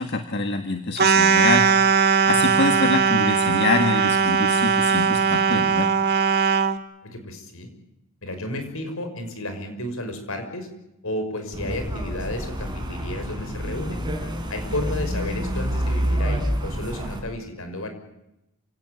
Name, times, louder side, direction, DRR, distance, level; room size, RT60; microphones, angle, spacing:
voice 1, 0.0-1.8 2.3-5.9, left 3 dB, 50° left, 6 dB, 1.7 m, -25 dB
sound 1, 1.0-6.8, right 6 dB, 45° right, 1.6 m, -19 dB
voice 2, 7.0-7.7 8.2-10.7 11.0-14.0 14.5-17.9, left 1 dB, 70° left, 7 dB, 5.9 m, -32 dB
sound 2, 11.5-17.2, equal, 20° right, 4.7 m, -28 dB
28.5 x 17.5 x 8.5 m, 0.88 s
head